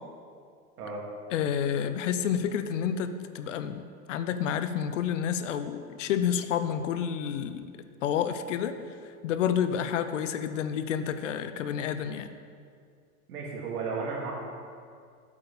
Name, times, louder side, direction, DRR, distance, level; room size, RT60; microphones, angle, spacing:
voice 1, 1.3-8.9 9.2-12.3, left 8 dB, 55° left, 10 dB, 0.5 m, -29 dB
voice 2, 13.3-14.3, right 4 dB, 80° right, -3 dB, 2.3 m, -34 dB
8.4 x 4.1 x 6.7 m, 2.2 s
supercardioid pair, 160°, 45 cm